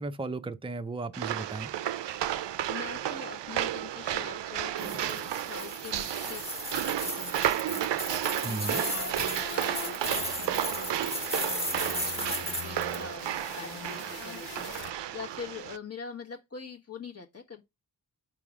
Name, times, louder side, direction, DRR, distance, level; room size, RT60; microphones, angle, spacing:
voice 1, 0.0-1.7 8.4-8.8, right 3 dB, 15° right, 0.5 m, -35 dB
sound 1, 1.1-15.8, right 11 dB, 85° right, 0.5 m, -32 dB
voice 2, 2.3-6.5 7.0-13.2 13.5-17.6, left 5 dB, 35° left, 1.4 m, -44 dB
sound 2, 4.8-13.0, left 1 dB, 15° left, 1.1 m, -36 dB
sound 3, 8.6-14.9, left 9 dB, 60° left, 0.6 m, -44 dB
5.2 x 3.8 x 4.8 m
wide cardioid pair, 120°, 42 cm